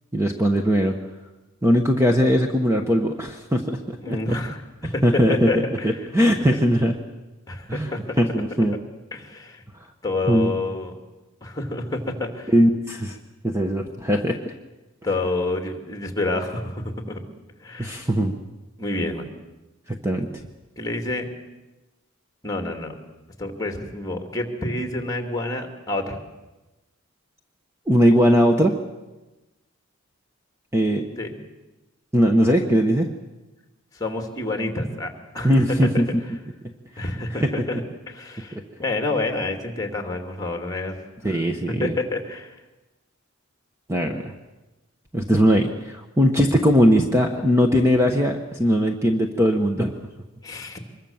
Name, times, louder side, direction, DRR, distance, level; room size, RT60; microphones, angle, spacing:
voice 1, 0.1-1.0 1.6-4.4 4.8-7.0 7.7-8.8 10.3-10.5 12.5-13.2 13.4-14.5 17.8-18.3 19.9-20.4 27.9-28.8 30.7-31.0 32.1-33.1 35.4-36.1 37.0-37.1 37.4-37.5 38.5-38.6 41.2-41.9 43.9-44.3 45.1-49.9, equal, 15° right, 4 dB, 1.1 m, -20 dB
voice 2, 4.0-4.6 4.9-6.0 6.5-6.6 7.5-8.2 9.1-9.6 10.0-10.9 11.4-12.5 15.0-17.2 17.6-18.0 18.8-19.3 20.8-21.3 22.4-23.0 23.4-26.2 31.2-31.4 33.9-35.9 37.0-37.8 38.1-41.0 41.3-41.4 41.7-42.5 50.4-50.9, left 2 dB, 15° left, 4 dB, 2.6 m, -28 dB
25.0 x 22.0 x 7.3 m, 1.1 s
head